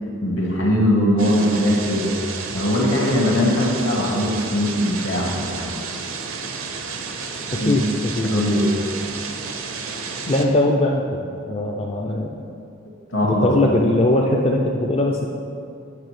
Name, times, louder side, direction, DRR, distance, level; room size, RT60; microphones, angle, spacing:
voice 1, 0.2-2.1 2.5-5.7 7.5-7.8 8.2-8.7 13.1-13.7, left 1 dB, 60° left, -1 dB, 1.3 m, -20 dB
sound 1, 1.2-10.4, right 5 dB, 70° right, 0.6 m, -31 dB
voice 2, 7.6-8.3 10.3-12.4 13.2-15.3, left 1 dB, 30° left, -1 dB, 0.3 m, -20 dB
8.6 x 5.9 x 3.2 m, 2.5 s
head